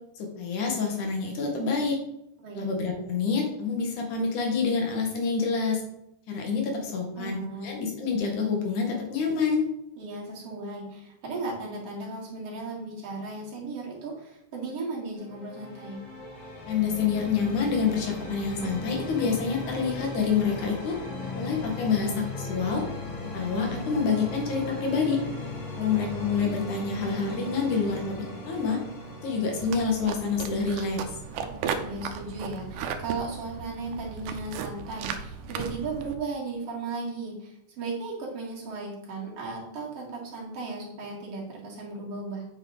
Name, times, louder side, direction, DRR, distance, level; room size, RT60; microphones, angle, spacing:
voice 1, 0.2-2.0 2.5-5.8 6.3-9.7 16.7-21.0 21.3-22.8 23.2-25.2 25.8-28.1 28.5-28.8 29.2-31.2, left 5 dB, 70° left, 1 dB, 2.8 m, -27 dB
voice 2, 7.2-7.7 10.0-16.0 25.9-26.1 31.4-42.5, right 3 dB, 50° right, -3 dB, 2.8 m, -36 dB
sound 1, 15.1-32.9, left 1 dB, 35° left, 1.2 m, -38 dB
sound 2, 29.6-36.1, right 6 dB, 75° right, 2.1 m, -36 dB
8.4 x 5.5 x 3.9 m, 0.81 s
omnidirectional pair, 3.8 m